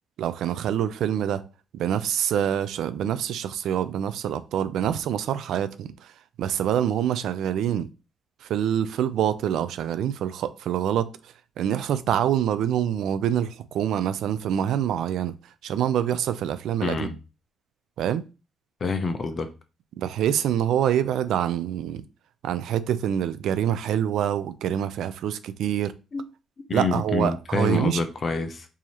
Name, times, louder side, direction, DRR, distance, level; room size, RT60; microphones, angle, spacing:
voice 1, 0.2-1.4 1.7-6.1 6.4-7.9 8.4-11.1 11.6-15.4 15.6-17.1 18.0-18.2 20.0-22.0 22.4-25.9 26.7-28.0, right 10 dB, 80° right, 0.4 m, -25 dB
voice 2, 16.8-17.1 18.8-19.5 26.1-26.2 26.7-28.7, left 3 dB, 40° left, 0.7 m, -27 dB
4.7 x 2.7 x 3.0 m
cardioid pair, 90°, 0 cm